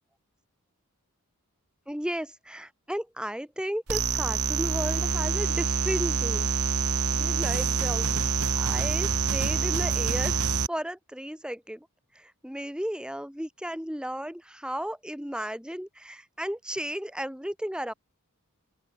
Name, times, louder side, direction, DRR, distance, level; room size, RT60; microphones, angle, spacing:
voice 1, 1.9-6.5 7.1-8.3 8.6-10.4 10.7-11.9 12.1-17.9, equal, 5° right, 4.0 m, -34 dB
sound 1, 3.9-10.7, right 5 dB, 85° right, 2.2 m, -26 dB
open air
head